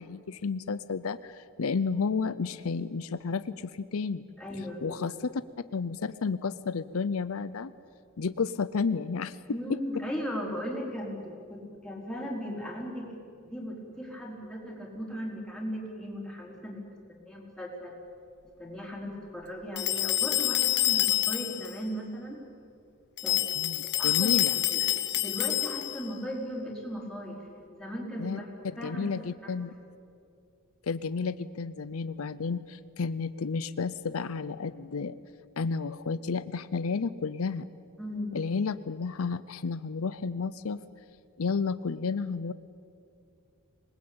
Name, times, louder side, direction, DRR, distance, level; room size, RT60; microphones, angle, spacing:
voice 1, 0.0-4.2 4.8-5.4 5.7-7.7 8.2-9.4 9.7-9.8 23.6-24.6 28.2-28.4 28.8-29.7 30.8-35.2 35.6-37.7 38.3-40.8 41.4-42.5, left 5 dB, 70° left, 14 dB, 0.6 m, -31 dB
voice 2, 4.4-5.0 9.5-16.8 17.1-17.9 18.6-22.4 23.2-23.4 23.8-24.9 25.2-28.5 28.8-29.1 29.4-29.5 38.0-38.3, equal, 5° left, -3 dB, 4.4 m, -37 dB
sound 1, 19.8-21.7 23.2-26.1, left 15 dB, 50° left, 1.3 m, -27 dB
26.5 x 19.5 x 8.8 m, 2.5 s
head